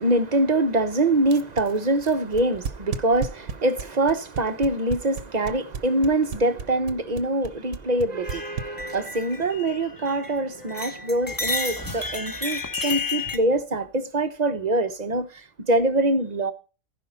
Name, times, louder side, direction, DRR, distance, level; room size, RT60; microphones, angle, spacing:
voice 1, 0.0-16.5, right 2 dB, 35° right, 0.8 m, -24 dB
sound 1, 1.2-9.2, right 6 dB, 65° right, 1.1 m, -33 dB
sound 2, 8.2-10.4 10.7-13.4, left 3 dB, 15° left, 1.1 m, -31 dB
15.0 x 5.0 x 5.5 m
omnidirectional pair, 1.4 m